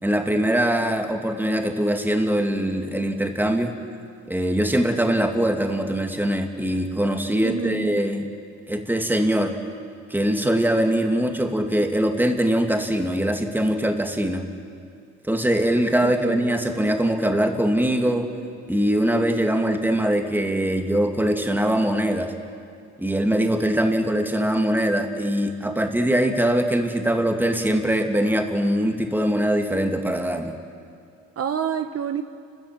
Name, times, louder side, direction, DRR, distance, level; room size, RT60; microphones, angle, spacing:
voice 1, 0.0-3.7 4.3-8.3 8.7-9.6 10.1-14.5 15.3-18.3 18.7-22.3 23.0-30.5, right 1 dB, 5° right, 3 dB, 2.5 m, -22 dB
voice 2, 7.4-7.9 16.0-16.4 31.4-32.2, right 8 dB, 50° right, 7 dB, 1.1 m, -27 dB
29.5 x 14.0 x 9.0 m, 2.4 s
cardioid pair, 90°, 30 cm